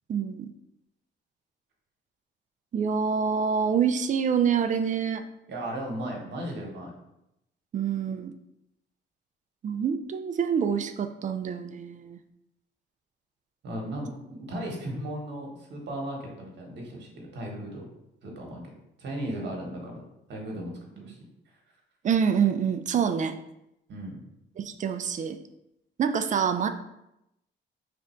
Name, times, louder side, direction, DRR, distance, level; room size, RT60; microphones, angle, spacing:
voice 1, 0.1-0.5 2.7-5.2 7.7-8.3 9.6-12.2 22.0-23.3 24.6-25.4 26.0-26.7, right 7 dB, 40° right, 8 dB, 0.4 m, -26 dB
voice 2, 5.5-6.9 13.6-17.8 18.2-18.6 19.0-20.0 20.3-20.7 21.0-21.2 23.9-24.2, right 1 dB, 60° right, -1 dB, 1.2 m, -36 dB
3.3 x 2.6 x 4.3 m, 0.84 s
cardioid pair, 90°, 20 cm